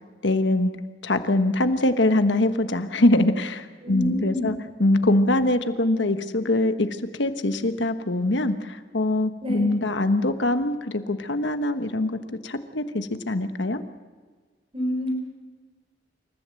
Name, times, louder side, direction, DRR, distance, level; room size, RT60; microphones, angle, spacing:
voice 1, 0.2-0.7 1.0-6.9 7.1-13.8, left 1 dB, 75° left, 9 dB, 1.3 m, -23 dB
voice 2, 3.8-4.5 9.4-9.7 14.7-15.1, left 1 dB, 30° right, 2 dB, 4.8 m, -27 dB
28.0 x 14.5 x 7.7 m, 1.4 s
head